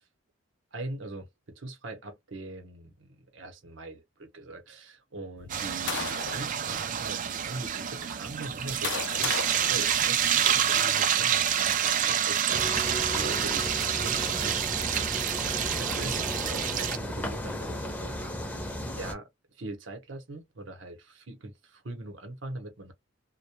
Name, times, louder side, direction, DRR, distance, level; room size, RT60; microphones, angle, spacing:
voice 1, 0.7-12.7 13.1-14.7 15.8-18.7 18.9-19.3 19.6-22.9, right 2 dB, 75° right, 0.8 m, -41 dB
sound 1, 5.4-6.5 7.3-7.4 8.3-10.7, left 7 dB, 65° left, 0.4 m, -37 dB
sound 2, 5.5-17.0, right 9 dB, 40° right, 0.3 m, -28 dB
sound 3, 12.5-19.1, equal, 10° left, 0.5 m, -34 dB
2.1 x 2.1 x 2.8 m
head